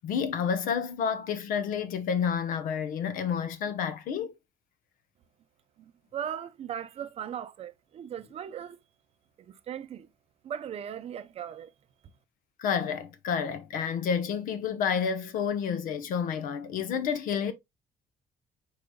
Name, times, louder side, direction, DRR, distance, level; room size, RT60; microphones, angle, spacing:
voice 1, 0.0-4.3 12.6-17.5, left 7 dB, 70° left, 0.9 m, -30 dB
voice 2, 5.8-8.8 9.5-10.1 10.4-11.7, right 9 dB, 45° right, 0.5 m, -38 dB
5.0 x 4.8 x 2.2 m
cardioid pair, 150°, 14 cm